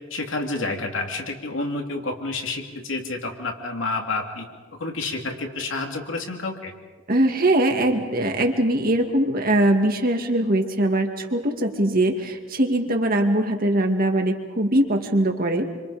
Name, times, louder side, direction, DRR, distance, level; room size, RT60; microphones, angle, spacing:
voice 1, 0.1-4.5 4.8-6.7, left 3 dB, 70° left, 3 dB, 2.9 m, -29 dB
voice 2, 7.1-15.8, right 1 dB, 45° right, 4 dB, 2.2 m, -21 dB
27.5 x 25.5 x 5.1 m, 1.4 s
head